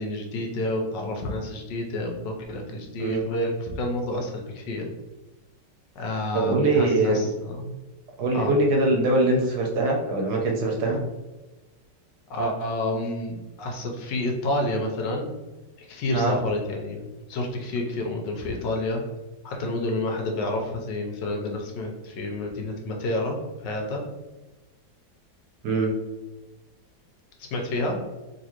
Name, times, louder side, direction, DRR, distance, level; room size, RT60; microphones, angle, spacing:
voice 1, 0.0-4.9 6.0-7.7 8.3-8.5 12.3-15.3 15.8-19.0 19.4-24.0 27.5-28.0, left 1 dB, 75° left, 1 dB, 1.3 m, -29 dB
voice 2, 6.3-7.3 8.2-11.0 16.1-16.3 25.6-25.9, right 2 dB, 70° right, 0 dB, 1.1 m, -22 dB
4.0 x 2.6 x 2.9 m, 1.1 s
omnidirectional pair, 2.0 m